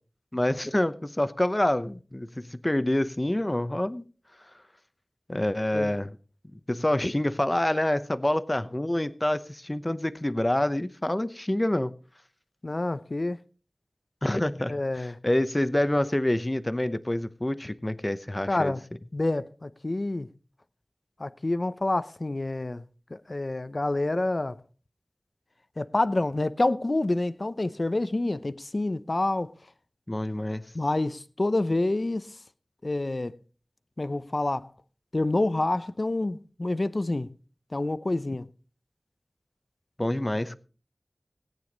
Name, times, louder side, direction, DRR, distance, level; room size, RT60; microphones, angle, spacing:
voice 1, 0.3-4.0 5.3-6.2 6.7-11.9 14.2-18.7 30.1-30.7 40.0-40.6, left 1 dB, 25° left, 0.9 m, -27 dB
voice 2, 12.6-13.4 14.7-15.2 18.5-18.8 19.1-20.3 21.2-22.8 23.1-24.6 25.8-29.5 30.7-32.3 32.8-33.4 34.0-34.7 35.1-37.3 37.7-38.5, left 2 dB, 55° left, 0.7 m, -27 dB
17.5 x 9.3 x 4.0 m
wide cardioid pair, 45°, 0 cm